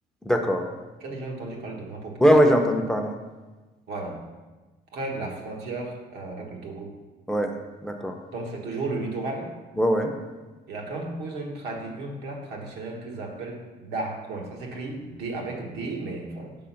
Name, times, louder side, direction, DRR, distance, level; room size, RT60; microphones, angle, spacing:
voice 1, 0.2-0.7 2.2-3.1 7.3-7.5 7.8-8.2 9.8-10.1, equal, 5° left, 4 dB, 0.5 m, -21 dB
voice 2, 1.0-2.2 3.9-4.2 4.9-6.9 8.3-9.5 10.7-16.5, right 2 dB, 85° right, 0 dB, 1.2 m, -34 dB
4.9 x 3.8 x 5.7 m, 1.2 s
cardioid pair, 110°, 17 cm